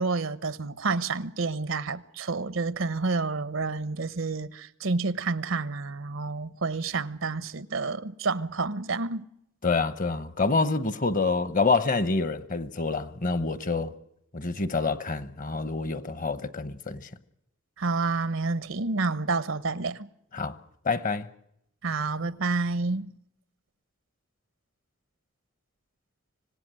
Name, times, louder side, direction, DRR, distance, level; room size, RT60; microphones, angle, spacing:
voice 1, 0.0-9.2 17.8-20.1 21.8-23.1, right 3 dB, 80° right, 0.9 m, -29 dB
voice 2, 9.6-13.9 14.3-17.1 20.3-20.6 20.8-21.3, left 4 dB, 40° left, 1.0 m, -27 dB
26.0 x 17.5 x 7.7 m
head